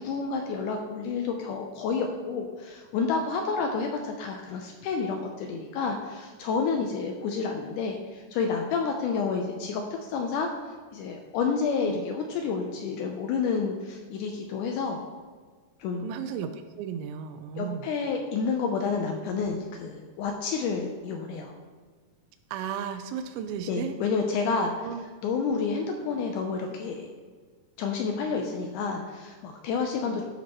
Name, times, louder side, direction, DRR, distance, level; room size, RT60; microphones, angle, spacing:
voice 1, 0.0-10.5 10.9-15.0 15.8-16.0 17.6-21.5 23.7-24.9 25.2-27.1 27.8-30.2, left 5 dB, 90° left, 3 dB, 1.8 m, -29 dB
voice 2, 16.0-17.9 22.5-23.9 24.8-25.0 30.0-30.2, right 8 dB, 85° right, 7 dB, 2.4 m, -35 dB
13.0 x 5.3 x 3.0 m, 1.5 s
omnidirectional pair, 4.3 m